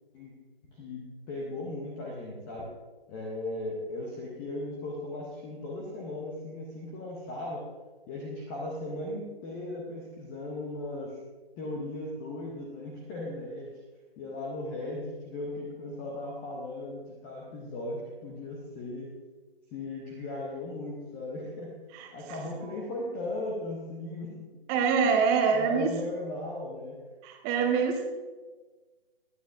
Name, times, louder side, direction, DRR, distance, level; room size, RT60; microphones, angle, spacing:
voice 1, 0.7-2.7 3.1-7.6 8.1-11.2 11.6-13.7 14.2-19.1 19.7-21.7 22.1-24.5 25.5-27.0, left 2 dB, 5° left, -2 dB, 0.6 m, -37 dB
voice 2, 24.7-25.9 27.2-28.1, right 6 dB, 10° right, 3 dB, 1.0 m, -25 dB
20.0 x 12.0 x 2.5 m, 1.3 s
figure-of-eight pair, 145°, 31 cm